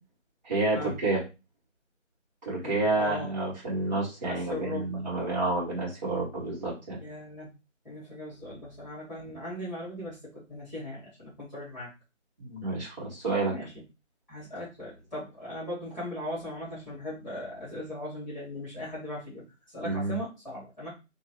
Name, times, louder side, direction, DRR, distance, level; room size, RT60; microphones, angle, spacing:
voice 1, 0.4-1.2 2.5-7.0 12.4-13.5 19.8-20.2, right 2 dB, 35° right, -7 dB, 2.4 m, -29 dB
voice 2, 2.6-3.3 4.3-5.0 7.0-7.5 7.8-11.9 13.5-13.7 14.3-19.4 19.7-20.9, left 1 dB, ahead, -8 dB, 2.2 m, -38 dB
3.8 x 2.9 x 2.9 m, 0.27 s
figure-of-eight pair, 160°, 39 cm